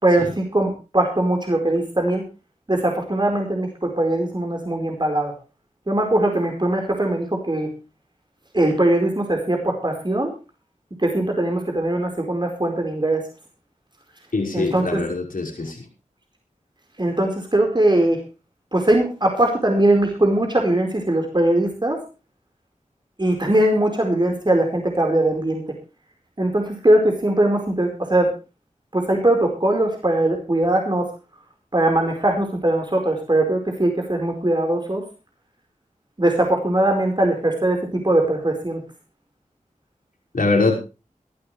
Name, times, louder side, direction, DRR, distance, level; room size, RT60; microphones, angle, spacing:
voice 1, 0.0-2.2 2.7-5.3 5.9-7.7 8.5-10.3 11.0-13.2 14.5-15.0 17.0-18.2 18.7-22.0 23.2-25.6 26.4-28.3 28.9-31.1 31.7-35.0 36.2-38.8, right 1 dB, 30° right, 2 dB, 4.7 m, -20 dB
voice 2, 14.3-15.8 40.3-40.7, left 3 dB, 80° left, 0 dB, 5.8 m, -22 dB
22.0 x 12.0 x 3.3 m, 0.31 s
cardioid pair, 40°, 14 cm